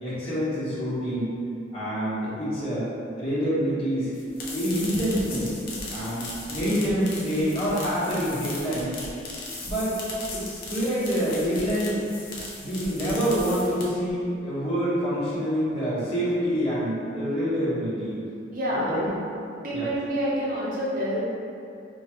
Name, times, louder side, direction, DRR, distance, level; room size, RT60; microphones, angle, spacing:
voice 1, 0.0-1.3 1.7-2.9 3.2-4.1 4.5-5.6 5.9-8.9 9.6-10.0 10.3-12.0 12.6-18.2 18.7-19.0 19.7-19.9, equal, 30° left, -11 dB, 1.3 m, -26 dB
sound 1, 4.1-14.1, left 2 dB, 50° left, 0.7 m, -37 dB
voice 2, 18.5-19.1 19.6-21.2, equal, 50° right, -7 dB, 0.8 m, -27 dB
4.8 x 2.3 x 3.0 m, 2.6 s
head